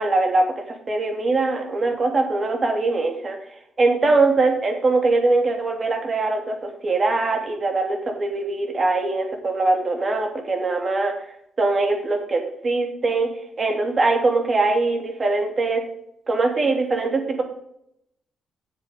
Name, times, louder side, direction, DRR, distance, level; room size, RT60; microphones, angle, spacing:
voice 1, 0.0-3.4 3.8-11.1 11.6-13.3 13.6-15.8 16.3-17.4, right 3 dB, 40° right, 3 dB, 3.1 m, -22 dB
9.9 x 7.5 x 5.4 m, 0.74 s
supercardioid pair, 65°, 0 cm